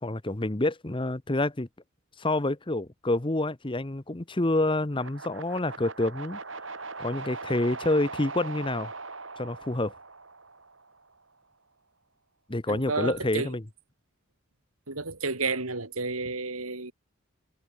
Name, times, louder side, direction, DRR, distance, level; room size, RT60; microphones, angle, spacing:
voice 1, 0.0-1.7 2.2-6.4 7.0-8.9 9.4-9.9 12.5-13.6, left 2 dB, 25° left, 1.0 m, -28 dB
sound 1, 4.9-11.1, right 3 dB, 60° right, 5.9 m, -40 dB
voice 2, 12.7-13.6 14.9-16.9, right 3 dB, 90° right, 3.8 m, -31 dB
head